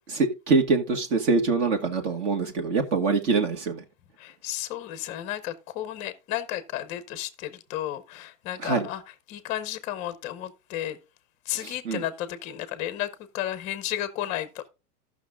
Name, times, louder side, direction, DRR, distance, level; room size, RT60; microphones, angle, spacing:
voice 1, 0.1-3.8 8.6-8.9 11.5-12.0, right 4 dB, 50° right, 2.1 m, -24 dB
voice 2, 4.2-9.0 9.3-11.0 11.5-14.7, left 13 dB, 15° left, 0.6 m, -33 dB
14.0 x 6.1 x 3.7 m
supercardioid pair, 165°, 46 cm